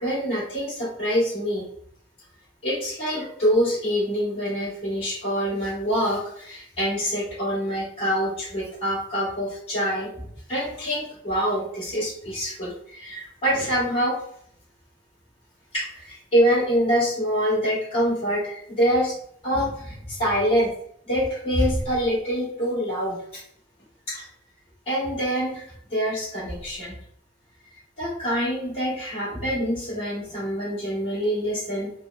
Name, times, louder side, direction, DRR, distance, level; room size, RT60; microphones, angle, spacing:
voice 1, 0.0-1.7 2.6-14.2 15.7-19.1 19.4-20.7 21.1-23.4 24.1-24.2 24.9-27.0 28.0-31.9, equal, 30° left, -11 dB, 1.3 m, -25 dB
3.3 x 2.1 x 2.3 m, 0.66 s
head